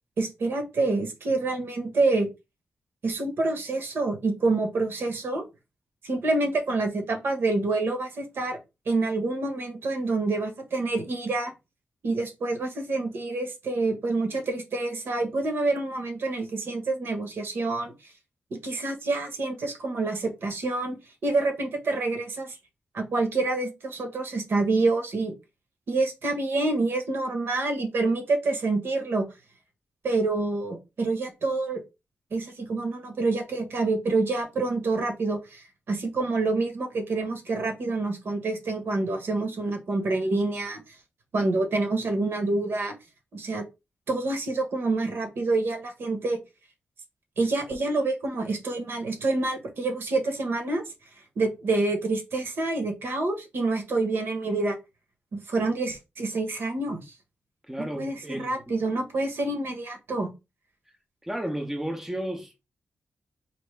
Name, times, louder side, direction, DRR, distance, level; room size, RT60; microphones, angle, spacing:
voice 1, 0.2-2.3 3.0-5.4 6.0-8.6 8.9-11.5 12.0-17.9 18.5-22.6 22.9-25.3 25.9-29.2 30.0-31.8 32.3-40.9 41.3-42.9 43.3-43.6 44.1-46.4 47.4-50.8 51.4-54.8 55.3-57.0 57.8-60.3, right 3 dB, 65° right, 1.1 m, -27 dB
voice 2, 57.7-58.6 61.2-62.6, right 1 dB, 10° right, 0.6 m, -33 dB
4.2 x 2.8 x 3.3 m
wide cardioid pair, 165°, 4 cm